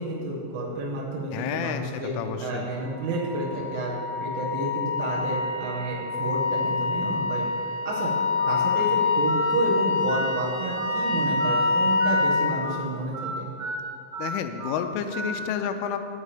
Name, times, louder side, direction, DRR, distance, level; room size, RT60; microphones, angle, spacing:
voice 1, 0.0-2.1 2.4-3.9 4.2-7.5 7.9-8.1 8.5-13.5, right 2 dB, 85° right, -5 dB, 3.8 m, -30 dB
voice 2, 1.3-1.8 2.2-2.7 14.2-16.0, left 8 dB, 90° left, 8 dB, 3.1 m, -30 dB
Wind instrument woodwind instrument, 3.0-12.5, left 3 dB, 60° left, 2.5 m, -26 dB
Telephone, 8.4-8.6 9.3-9.5 10.1-10.3 10.8-11.0 11.4-11.6 12.0-12.2 12.6-12.8 13.1-13.3 13.6-13.8 14.1-14.3 14.6-14.8 15.1-15.3, right 3 dB, 65° right, 3.9 m, -33 dB
17.0 x 7.4 x 3.5 m, 2.5 s
omnidirectional pair, 5.5 m